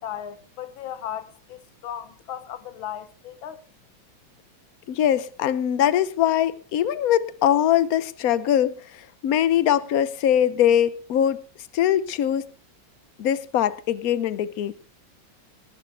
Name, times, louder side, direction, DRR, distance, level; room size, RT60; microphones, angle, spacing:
voice 1, 0.0-3.6, left 10 dB, 90° left, 1.8 m, -36 dB
voice 2, 4.9-11.4 11.7-12.5 13.2-14.7, left 10 dB, 60° left, 1.0 m, -22 dB
20.0 x 12.0 x 3.4 m
omnidirectional pair, 2.1 m